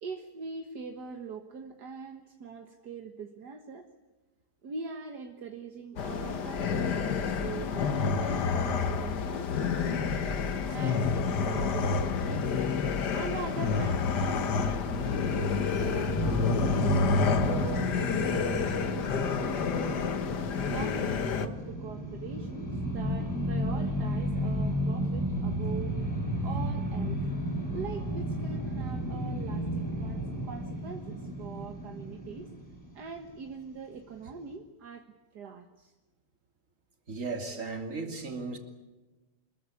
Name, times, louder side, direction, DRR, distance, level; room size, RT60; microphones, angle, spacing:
voice 1, 0.0-3.9 4.6-10.1 10.7-12.4 13.1-16.9 17.2-20.3 20.7-26.0 26.4-27.2 27.7-32.5 32.9-35.9, right 5 dB, 65° right, 2.0 m, -42 dB
sound 1, 6.0-21.5, left 5 dB, 70° left, 2.0 m, -29 dB
sound 2, 16.1-33.3, equal, 10° left, 5.1 m, -33 dB
voice 2, 37.1-38.6, right 4 dB, 45° right, 3.2 m, -35 dB
26.0 x 21.5 x 8.5 m
omnidirectional pair, 1.9 m